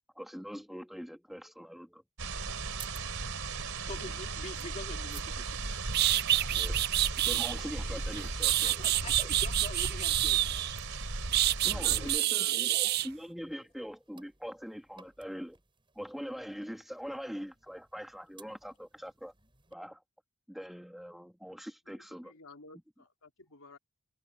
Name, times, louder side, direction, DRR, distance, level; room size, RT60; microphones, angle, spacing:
voice 1, 0.1-2.0 6.5-8.9 11.6-15.6 15.9-19.3 19.7-20.0 20.5-22.3, equal, ahead, 1.5 m, -43 dB
sound 1, 2.2-12.2, right 3 dB, 80° right, 3.0 m, -37 dB
sound 2, 2.3-19.7, right 7 dB, 25° right, 7.4 m, -59 dB
voice 2, 3.9-5.5 8.5-10.6, left 2 dB, 30° left, 2.3 m, -45 dB
sound 3, 5.5-5.6 5.9-7.5 8.1-10.8 11.3-13.1, right 14 dB, 45° right, 0.4 m, -27 dB
voice 3, 11.6-12.7 22.2-23.8, left 3 dB, 70° left, 3.6 m, -51 dB
head